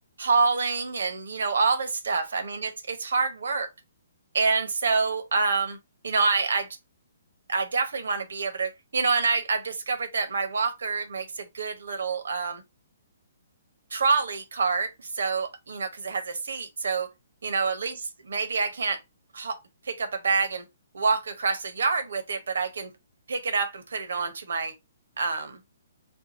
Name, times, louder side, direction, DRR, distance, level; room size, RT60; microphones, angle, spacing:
voice 1, 0.2-3.7 4.3-5.8 6.0-6.7 7.5-12.6 13.9-17.1 17.4-19.0 19.3-19.6 19.8-20.6 20.9-22.9 23.3-24.7 25.2-25.6, right 4 dB, 70° right, 0.9 m, -27 dB
4.4 x 2.2 x 4.1 m
figure-of-eight pair, 130°, 0 cm